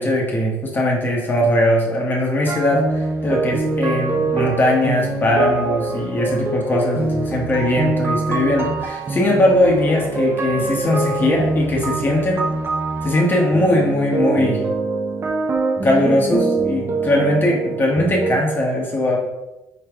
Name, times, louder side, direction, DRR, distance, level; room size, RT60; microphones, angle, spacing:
voice 1, 0.0-12.5 13.0-14.6 15.8-19.2, left 1 dB, 25° left, -2 dB, 1.0 m, -19 dB
sound 1, 2.5-18.4, right 3 dB, 30° right, 0.7 m, -24 dB
4.8 x 3.1 x 3.5 m, 0.98 s
cardioid pair, 100°, 8 cm